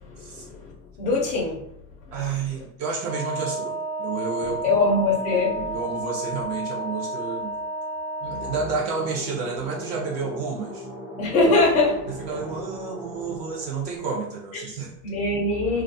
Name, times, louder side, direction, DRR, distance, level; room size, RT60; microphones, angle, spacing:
voice 1, 0.1-0.7 1.0-1.6 4.6-5.8 8.3-8.6 11.2-12.3 14.5-14.6 15.0-15.8, left 2 dB, 20° left, -3 dB, 0.3 m, -23 dB
voice 2, 2.1-3.7 4.0-4.8 5.3-7.6 8.2-10.9 12.1-14.9, right 5 dB, 45° right, -1 dB, 0.6 m, -30 dB
Wind instrument woodwind instrument, 3.0-8.8, right 2 dB, 65° right, 1.1 m, -31 dB
sound 1, 8.4-14.0, equal, 10° right, 0.8 m, -39 dB
2.3 x 2.3 x 2.6 m, 0.69 s
supercardioid pair, 150°, 46 cm